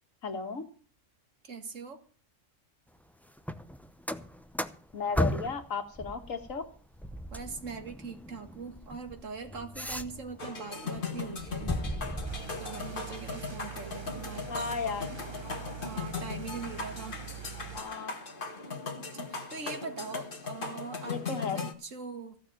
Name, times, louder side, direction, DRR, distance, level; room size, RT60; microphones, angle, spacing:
voice 1, 0.2-0.6 4.9-6.7 14.5-15.1 17.7-18.1 21.0-21.6, left 5 dB, 90° left, 8 dB, 1.8 m, -34 dB
voice 2, 1.4-2.0 7.3-11.8 12.6-14.8 15.8-17.2 17.5-17.6 19.1-22.4, right 4 dB, 75° right, 7 dB, 2.1 m, -42 dB
sound 1, 3.4-5.7 6.0-10.5 10.9-12.4, equal, ahead, 0.4 m, -36 dB
sound 2, 10.4-21.7, left 4 dB, 45° left, 1.6 m, -38 dB
sound 3, 12.3-17.8, right 9 dB, 25° right, 1.1 m, -44 dB
15.0 x 6.5 x 8.9 m, 0.43 s
omnidirectional pair, 1.3 m